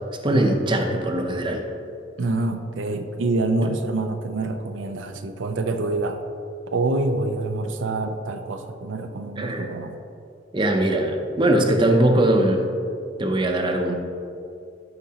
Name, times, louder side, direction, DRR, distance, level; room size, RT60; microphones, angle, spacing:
voice 1, 0.2-1.6 9.4-9.6 10.5-12.6 13.2-13.9, right 1 dB, 25° right, 3 dB, 0.6 m, -21 dB
voice 2, 2.2-6.2 6.7-10.0, right 2 dB, 75° right, 6 dB, 0.5 m, -26 dB
11.5 x 5.2 x 2.9 m, 2.6 s
head